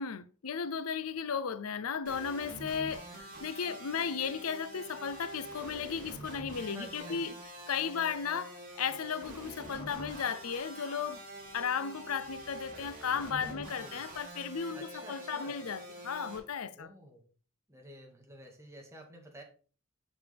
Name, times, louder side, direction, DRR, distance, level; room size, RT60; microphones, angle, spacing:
voice 1, 0.0-7.3 7.7-11.2 11.5-16.9, left 6 dB, 90° left, 0.6 m, -35 dB
sound 1, 2.1-16.4, right 1 dB, 40° right, 3.2 m, -46 dB
sound 2, 3.2-5.8 6.0-6.4 6.7-6.8 7.5-7.9 8.8-11.2 11.5-12.1, left 2 dB, 25° left, 1.4 m, -57 dB
voice 2, 6.5-7.4 13.3-14.0 14.7-15.5 16.8-17.2 17.7-19.4, right 1 dB, 15° right, 2.0 m, -50 dB
7.2 x 6.7 x 3.5 m
head